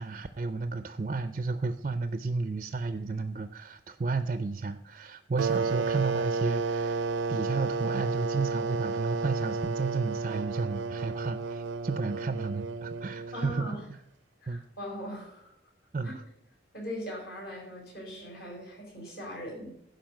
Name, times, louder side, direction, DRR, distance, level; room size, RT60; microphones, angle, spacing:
voice 1, 0.0-13.8 14.5-14.6 15.9-16.2, right 3 dB, 40° right, 11 dB, 0.4 m, -32 dB
sound 1, 5.4-13.8, right 4 dB, 90° right, 0.5 m, -32 dB
voice 2, 13.3-13.8 14.4-15.5 16.0-16.1 16.7-19.7, equal, 55° left, -2 dB, 4.8 m, -40 dB
12.0 x 5.2 x 6.4 m, 0.73 s
head